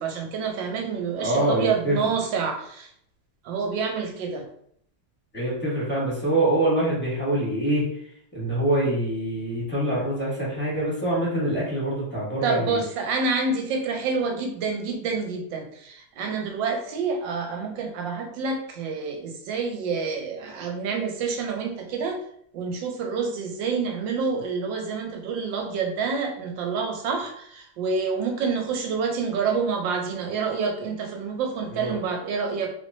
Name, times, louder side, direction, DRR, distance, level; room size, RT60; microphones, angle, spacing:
voice 1, 0.0-2.9 3.4-4.5 12.4-22.2 22.5-32.7, right 5 dB, 70° right, 3 dB, 1.2 m, -28 dB
voice 2, 1.2-2.0 5.3-7.9 8.3-12.8 31.7-31.9, right 1 dB, 5° left, -7 dB, 0.9 m, -25 dB
3.4 x 3.1 x 2.6 m, 0.67 s
omnidirectional pair, 2.3 m